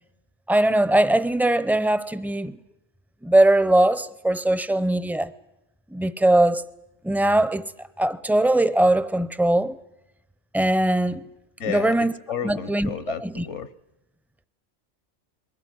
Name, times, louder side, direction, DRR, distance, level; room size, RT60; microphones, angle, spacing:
voice 1, 0.5-2.6 3.2-5.3 5.9-6.6 7.0-7.7 8.0-9.8 10.5-11.2 11.7-12.1 12.4-12.9 13.2-13.5, right 1 dB, ahead, 0.5 m, -20 dB
voice 2, 11.6-13.7, left 8 dB, 75° left, 1.4 m, -32 dB
22.0 x 17.5 x 9.4 m
omnidirectional pair, 1.2 m